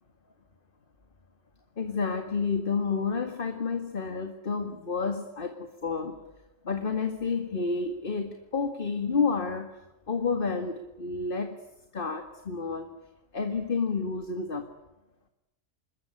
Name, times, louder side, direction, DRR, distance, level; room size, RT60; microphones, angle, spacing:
voice 1, 1.8-6.2 6.6-9.8 10.1-11.6 11.9-13.0 13.3-14.7, left 4 dB, 45° left, 7 dB, 2.1 m, -30 dB
27.0 x 22.0 x 9.9 m, 0.94 s
omnidirectional pair, 1.3 m